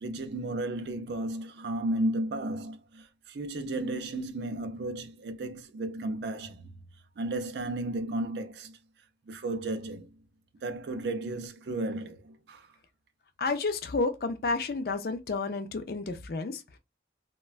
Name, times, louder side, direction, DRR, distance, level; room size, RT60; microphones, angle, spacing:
voice 1, 0.0-6.7 7.2-8.8 9.3-10.1 10.6-12.7, right 2 dB, 70° right, 0.4 m, -34 dB
voice 2, 13.4-16.8, left 3 dB, 55° left, 0.4 m, -31 dB
3.2 x 2.2 x 2.3 m
head